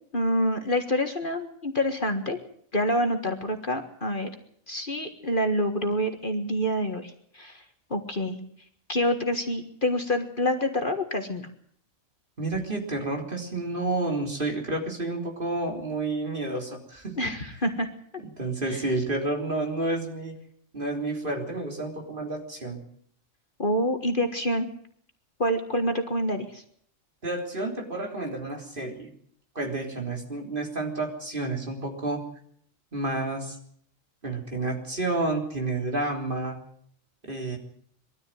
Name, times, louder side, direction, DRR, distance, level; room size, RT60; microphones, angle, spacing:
voice 1, 0.1-2.4 2.7-4.3 4.7-7.6 7.9-8.4 8.9-11.5 17.2-17.9 18.7-18.8 23.6-24.7 25.4-26.6, equal, 40° left, 6 dB, 1.8 m, -27 dB
voice 2, 12.4-17.4 18.2-20.4 20.7-22.8 27.2-29.1 29.6-32.2 32.9-33.6 34.2-36.6 37.3-37.6, right 2 dB, 40° right, 2 dB, 3.8 m, -30 dB
22.0 x 13.5 x 9.1 m, 0.62 s
omnidirectional pair, 1.4 m